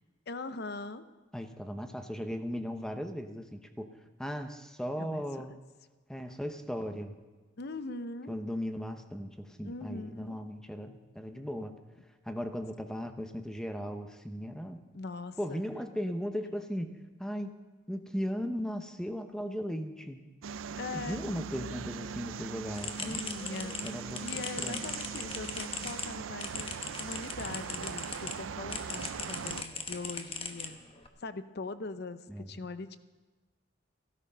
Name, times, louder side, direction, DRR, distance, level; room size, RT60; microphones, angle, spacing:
voice 1, 0.3-1.0 5.0-5.5 7.6-8.4 9.6-10.4 14.9-15.6 20.8-21.2 23.0-23.8 24.2-26.7 27.0-30.8 31.2-33.0, left 3 dB, 55° left, 12 dB, 0.7 m, -41 dB
voice 2, 1.3-3.9 4.2-5.5 6.1-7.1 8.3-11.7 12.2-14.8 15.4-17.5 17.9-20.2 20.9-23.2 23.8-24.2 24.6-24.9 32.3-32.5, equal, 5° left, 7 dB, 0.8 m, -37 dB
sound 1, 20.4-29.6, right 6 dB, 85° right, 0.4 m, -40 dB
sound 2, 22.7-28.4 28.7-31.1, left 5 dB, 30° left, 1.0 m, -40 dB
16.0 x 12.5 x 5.5 m, 1.3 s
head